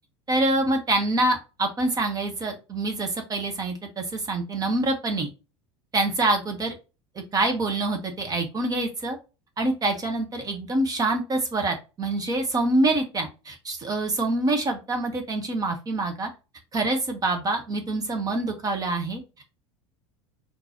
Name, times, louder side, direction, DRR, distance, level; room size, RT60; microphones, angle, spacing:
voice 1, 0.3-5.3 5.9-6.7 7.3-9.2 9.6-16.3 16.7-19.2, right 2 dB, 25° right, 4 dB, 0.9 m, -26 dB
4.7 x 3.8 x 2.8 m, 0.29 s
figure-of-eight pair, 75°, 16 cm